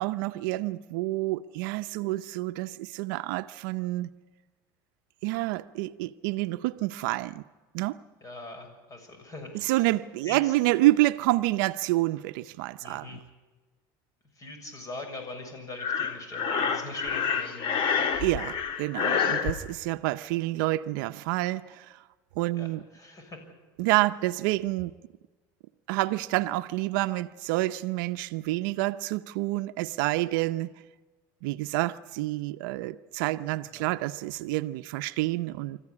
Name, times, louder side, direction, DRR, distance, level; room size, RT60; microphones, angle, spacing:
voice 1, 0.0-4.1 5.2-7.4 7.7-8.0 9.5-13.1 18.2-22.0 22.4-22.8 23.8-24.9 25.9-30.7 31.4-35.8, right 18 dB, 80° right, 11 dB, 0.6 m, -28 dB
voice 2, 8.2-9.8 10.3-10.5 12.8-13.2 14.4-17.8 19.5-19.6 22.6-23.4 33.7-33.9, left 2 dB, 30° left, 6 dB, 6.8 m, -42 dB
Breathing, 15.8-19.5, left 6 dB, 55° left, 2.1 m, -28 dB
26.0 x 14.5 x 9.7 m, 1.3 s
supercardioid pair, 110°, 11 cm